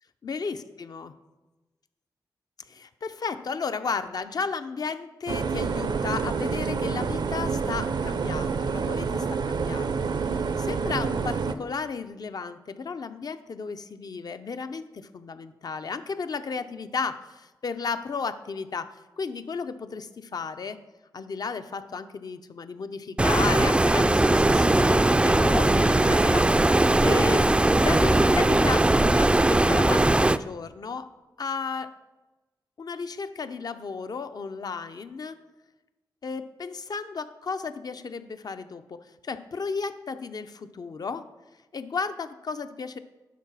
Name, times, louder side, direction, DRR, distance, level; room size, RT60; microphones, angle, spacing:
voice 1, 0.2-1.1 2.7-18.9 19.2-20.8 21.1-26.7 27.0-31.1 31.4-31.9 32.8-35.4 36.2-41.2 41.7-43.0, left 5 dB, 55° left, 10 dB, 0.6 m, -34 dB
sound 1, 5.3-11.5, right 5 dB, 70° right, 0.6 m, -28 dB
Stream, 23.2-30.4, right 2 dB, 15° right, 0.3 m, -20 dB
10.5 x 4.0 x 6.0 m, 1.1 s
cardioid pair, 55°, 8 cm